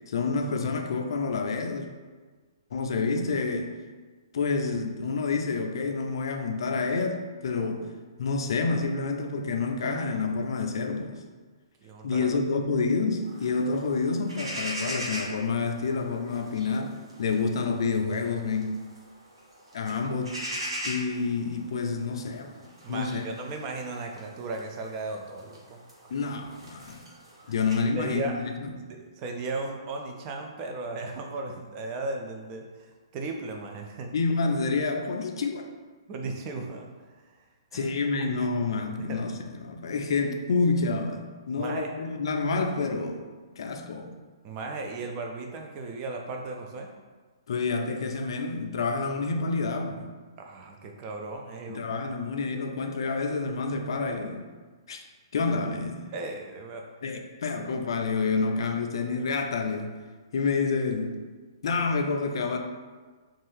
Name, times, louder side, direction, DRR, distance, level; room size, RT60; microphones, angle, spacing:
voice 1, 0.1-1.9 2.7-3.7 4.3-7.9 8.2-11.2 12.0-18.8 19.7-20.4 20.8-22.6 22.9-23.2 26.1-27.0 27.5-28.9 34.1-35.7 37.7-43.2 43.6-44.2 47.5-50.1 51.7-54.5 54.9-55.0 55.3-56.1 57.0-60.0 60.3-61.2 61.6-62.6, left 4 dB, 65° left, 4 dB, 0.4 m, -28 dB
voice 2, 11.8-12.4 22.8-26.1 27.4-27.6 28.0-28.4 29.0-34.1 36.1-36.9 37.7-37.9 39.0-39.3 41.6-41.9 44.4-46.9 50.4-51.8 56.1-56.8, right 3 dB, 30° right, 2 dB, 0.4 m, -36 dB
sound 1, 13.2-27.8, equal, 90° right, 0.8 m, -41 dB
2.6 x 2.3 x 3.2 m, 1.4 s
hypercardioid pair, 140°, 3 cm